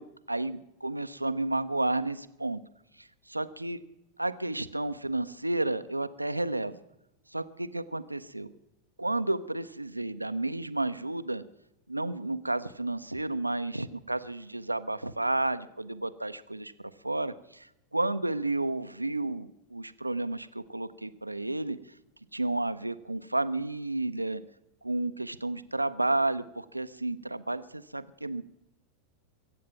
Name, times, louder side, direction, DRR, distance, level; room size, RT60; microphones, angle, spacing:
voice 1, 0.0-2.6 3.0-3.8 4.2-6.8 7.3-8.5 9.0-11.4 11.9-21.8 22.3-24.4 24.8-28.4, right 2 dB, 85° right, 13 dB, 0.6 m, -32 dB
22.5 x 8.5 x 5.8 m, 0.87 s
figure-of-eight pair, 90°, 0 cm